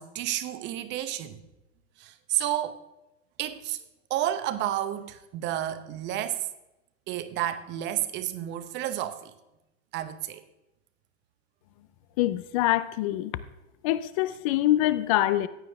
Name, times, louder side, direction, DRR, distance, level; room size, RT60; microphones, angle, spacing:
voice 1, 0.0-1.4 2.0-2.8 3.4-3.8 4.1-6.5 7.1-9.3 9.9-10.4, right 12 dB, 25° right, 0.9 m, -31 dB
voice 2, 12.2-13.3 13.8-15.5, left 14 dB, 30° left, 0.4 m, -24 dB
15.0 x 9.1 x 3.4 m
hypercardioid pair, 130°, 40 cm